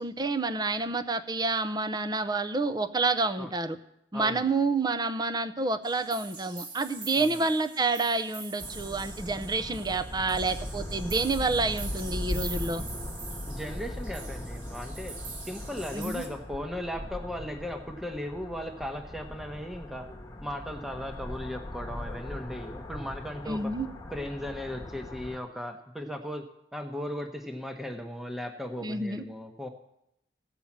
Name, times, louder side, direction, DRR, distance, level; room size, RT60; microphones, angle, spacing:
voice 1, 0.0-3.8 4.1-12.8 15.9-16.2 23.5-23.9 28.8-29.2, right 3 dB, 25° right, 10 dB, 0.6 m, -28 dB
voice 2, 4.1-4.5 7.2-7.4 13.4-15.2 15.5-20.0 20.4-23.7 24.1-26.5 26.7-29.7, left 1 dB, ahead, 5 dB, 1.0 m, -37 dB
sound 1, 5.8-16.3, right 4 dB, 50° right, 2.4 m, -44 dB
sound 2, 8.6-25.4, left 1 dB, 20° left, 1.2 m, -39 dB
16.5 x 5.5 x 7.3 m, 0.81 s
head